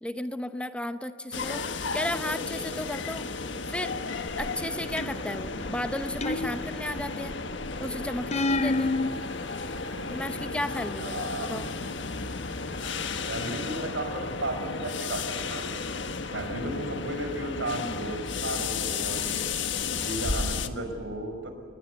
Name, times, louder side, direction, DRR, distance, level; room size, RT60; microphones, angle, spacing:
voice 1, 0.0-1.6 1.9-3.3 3.7-3.9 4.4-7.4 7.8-8.9 10.1-11.7, left 1 dB, 5° left, 9 dB, 0.8 m, -34 dB
sound 1, 1.3-20.7, left 4 dB, 70° left, 1.5 m, -33 dB
sound 2, 5.0-5.5 6.2-7.1 8.3-9.1, left 2 dB, 35° left, 0.7 m, -28 dB
voice 2, 10.8-11.5 13.3-15.6 16.3-19.4 20.0-21.5, right 1 dB, 80° right, 6 dB, 5.3 m, -34 dB
29.0 x 21.0 x 8.1 m, 2.4 s
head